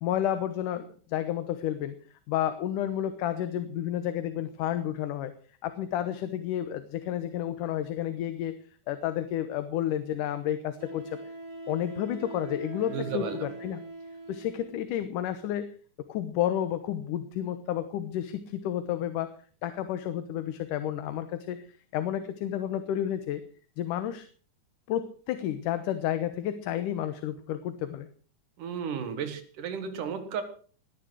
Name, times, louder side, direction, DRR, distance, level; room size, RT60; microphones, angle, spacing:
voice 1, 0.0-2.0 2.3-5.3 5.6-8.5 8.9-11.1 11.7-13.8 14.3-15.7 16.1-19.3 19.6-21.6 21.9-23.4 23.8-24.3 24.9-28.1, left 11 dB, 80° left, 10 dB, 2.6 m, -31 dB
Wind instrument woodwind instrument, 9.5-9.6 10.8-14.9, right 2 dB, 50° right, 4.7 m, -41 dB
voice 2, 12.9-13.5 28.6-30.4, right 7 dB, 80° right, 10 dB, 3.2 m, -34 dB
19.0 x 10.5 x 6.2 m, 0.43 s
omnidirectional pair, 3.6 m